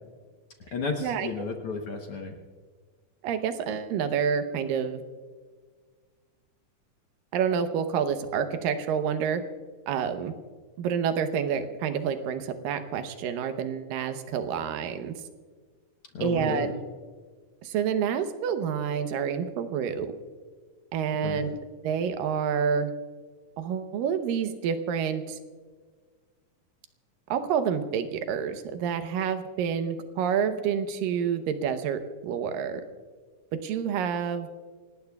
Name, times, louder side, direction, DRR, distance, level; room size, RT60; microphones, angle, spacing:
voice 1, 0.7-2.3 16.1-16.7 21.2-21.4, left 4 dB, 60° left, 2 dB, 1.5 m, -32 dB
voice 2, 3.2-5.0 7.3-9.4 9.9-10.3 10.8-15.1 16.2-16.7 17.6-20.1 20.9-21.6 21.8-22.9 23.6-25.4 27.3-32.8 33.6-34.5, right 7 dB, 90° right, 8 dB, 2.6 m, -28 dB
27.0 x 18.5 x 2.4 m, 1.5 s
omnidirectional pair, 3.9 m